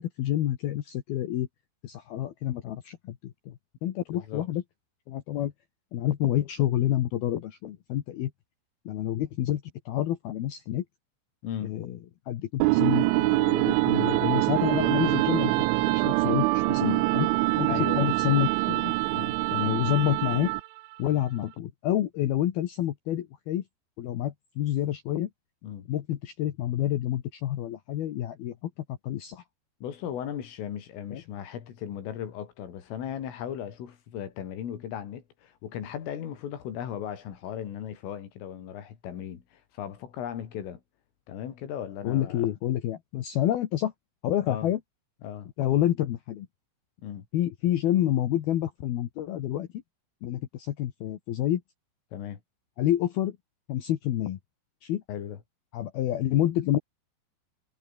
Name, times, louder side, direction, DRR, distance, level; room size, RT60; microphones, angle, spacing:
voice 1, 0.0-1.5 1.8-3.5 3.8-4.6 5.1-5.5 5.9-8.3 8.9-10.8 11.6-12.0 12.3-17.3 17.6-18.9 19.5-20.5 21.0-23.6 24.0-25.3 25.9-28.7 29.0-29.4 31.1-31.2 42.0-43.9 44.2-44.8 45.6-46.5 47.3-49.7 50.2-51.6 52.8-53.4 53.7-54.4 54.8-55.0 55.7-56.8, left 12 dB, 65° left, 2.8 m, -28 dB
voice 2, 4.1-4.5 11.4-11.8 17.7-18.2 19.1-19.4 25.6-25.9 29.8-40.8 41.3-42.5 44.5-44.7 45.2-45.5 47.0-47.3 52.1-52.4 55.1-55.4, left 9 dB, 85° left, 5.7 m, -37 dB
sound 1, 12.6-20.8, right 22 dB, 80° right, 3.0 m, -24 dB
omnidirectional pair, 5.7 m